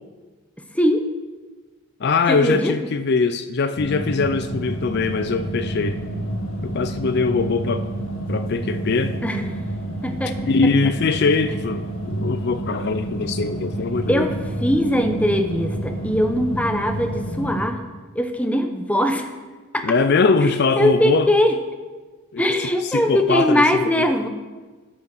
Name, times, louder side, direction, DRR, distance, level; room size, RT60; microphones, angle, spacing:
voice 1, 0.7-1.1 2.3-2.8 9.2-9.5 10.0-10.3 14.1-14.3 14.6-17.8 18.1-19.3 19.7-19.9 20.4-21.6 22.4-24.3, equal, 5° left, 0.8 m, -21 dB
voice 2, 2.0-6.0 6.6-7.9 8.3-9.2 10.5-14.3 19.8-21.3 22.3-22.4 22.9-24.1, left 4 dB, 50° left, 0.4 m, -22 dB
sound 1, 3.8-17.6, right 1 dB, 65° left, 1.8 m, -29 dB
13.5 x 6.9 x 6.0 m
head